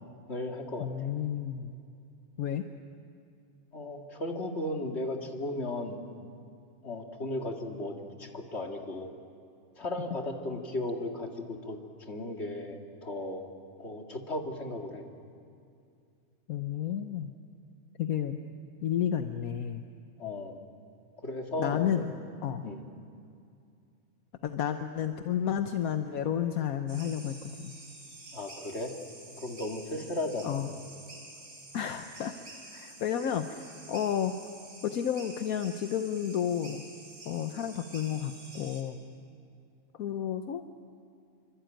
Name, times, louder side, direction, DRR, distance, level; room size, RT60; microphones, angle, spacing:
voice 1, 0.3-1.1 3.7-6.0 6.8-9.1 9.8-11.8 12.1-13.5 13.8-15.0 20.2-20.6 21.2-22.0 22.6-22.8 28.3-28.9 29.4-30.6, left 2 dB, 45° left, 2 dB, 2.5 m, -35 dB
voice 2, 0.8-1.8 2.4-2.6 16.5-17.3 18.0-18.4 18.8-19.9 21.6-22.0 22.4-22.6 24.4-27.7 30.4-30.7 31.7-32.3 32.7-33.6 33.9-34.3 34.8-36.8 37.3-39.0 40.0-40.7, left 9 dB, 75° left, 7 dB, 1.3 m, -31 dB
sound 1, 26.9-38.8, right 2 dB, 90° right, 4.9 m, -49 dB
27.0 x 24.5 x 9.1 m, 2.4 s
omnidirectional pair, 1.5 m